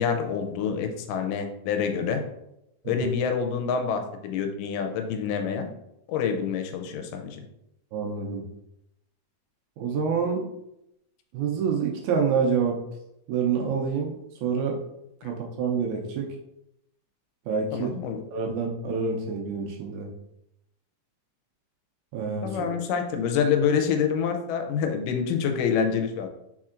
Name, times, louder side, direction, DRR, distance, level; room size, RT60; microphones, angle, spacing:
voice 1, 0.0-2.2 2.9-5.7 6.1-7.4 17.7-18.2 22.4-26.3, left 6 dB, 90° left, 5 dB, 2.2 m, -27 dB
voice 2, 7.9-8.4 9.8-10.5 11.3-12.8 13.3-14.1 14.4-14.8 15.2-16.3 17.5-17.9 18.3-20.1 22.1-22.8, right 6 dB, 80° right, 0 dB, 1.8 m, -27 dB
4.4 x 4.3 x 2.4 m, 0.83 s
omnidirectional pair, 3.7 m